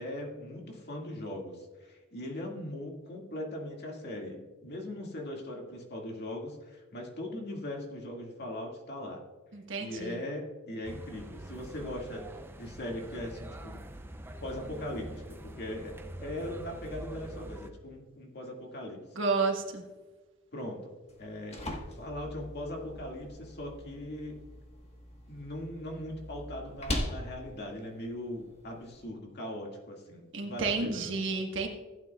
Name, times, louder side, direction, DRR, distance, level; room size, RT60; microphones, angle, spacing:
voice 1, 0.0-9.2 9.8-12.3 12.6-13.8 14.4-19.0 20.5-20.9 21.2-21.6 22.0-24.4 25.3-31.2, left 1 dB, 55° left, 0 dB, 2.0 m, -40 dB
voice 2, 9.5-10.2 19.1-19.8 30.3-31.7, right 4 dB, 65° right, 2 dB, 1.5 m, -31 dB
sound 1, 10.8-17.7, right 1 dB, 10° right, 0.5 m, -45 dB
sound 2, 21.1-29.0, left 1 dB, 30° left, 1.4 m, -41 dB
15.5 x 8.9 x 2.3 m, 1.3 s
head